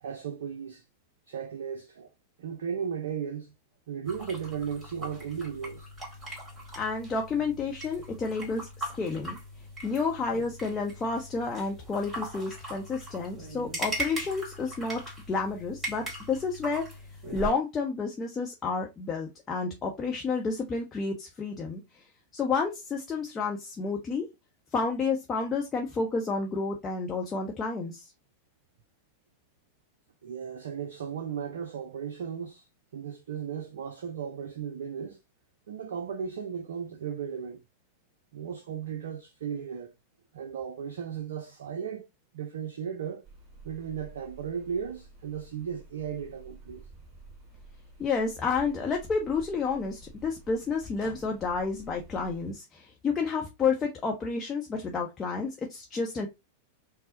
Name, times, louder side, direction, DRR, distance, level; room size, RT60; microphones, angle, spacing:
voice 1, 0.0-0.8 1.3-2.1 2.4-3.5 3.9-5.9 30.2-32.7 32.9-35.2 35.7-37.6 38.3-39.9 40.3-42.1 42.3-43.3 43.6-46.9, right 7 dB, 60° right, 0.4 m, -36 dB
sound 1, 4.0-17.5, right 2 dB, 10° right, 2.1 m, -40 dB
voice 2, 6.8-9.4 9.8-15.0 15.3-16.9 17.3-22.0 22.3-24.3 24.7-28.0 48.0-56.3, left 4 dB, 20° left, 0.7 m, -30 dB
sound 2, 43.2-52.5, right 3 dB, 25° right, 1.5 m, -52 dB
5.3 x 2.0 x 2.6 m
figure-of-eight pair, 90°, 0 cm